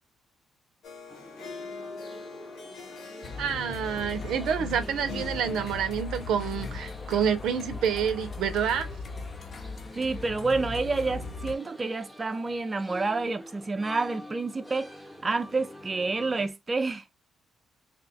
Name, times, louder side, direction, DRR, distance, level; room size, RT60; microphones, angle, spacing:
Harp, 0.8-8.3, left 4 dB, 85° left, 1.1 m, -45 dB
sound 1, 1.1-16.5, equal, 5° left, 0.8 m, -47 dB
sound 2, 3.2-11.5, left 4 dB, 50° left, 0.6 m, -38 dB
voice 1, 3.4-8.9, right 8 dB, 80° right, 0.5 m, -28 dB
voice 2, 9.9-14.9 15.2-17.0, right 3 dB, 25° right, 0.4 m, -29 dB
2.7 x 2.3 x 3.9 m
cardioid pair, 90°, 0 cm